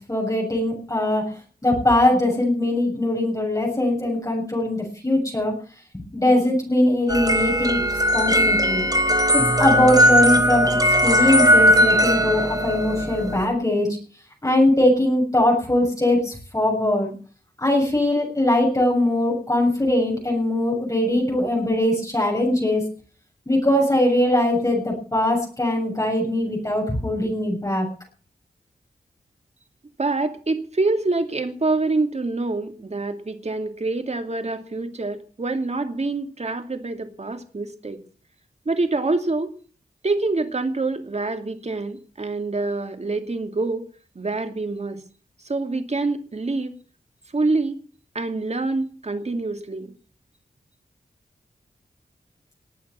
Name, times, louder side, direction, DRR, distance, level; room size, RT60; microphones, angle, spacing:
voice 1, 0.1-1.2 1.6-5.5 5.9-8.9 9.3-14.0 14.4-17.1 17.6-22.8 23.5-27.9, left 1 dB, 20° left, -2 dB, 7.3 m, -21 dB
sound 1, 7.1-13.4, equal, 25° right, 3.6 m, -18 dB
voice 2, 30.0-38.0 38.7-39.5 40.0-43.9 44.1-45.0 45.4-46.7 47.3-47.8 48.1-49.9, right 3 dB, 45° right, 7 dB, 2.6 m, -26 dB
19.5 x 8.7 x 7.0 m, 0.42 s
cardioid pair, 60°, 16 cm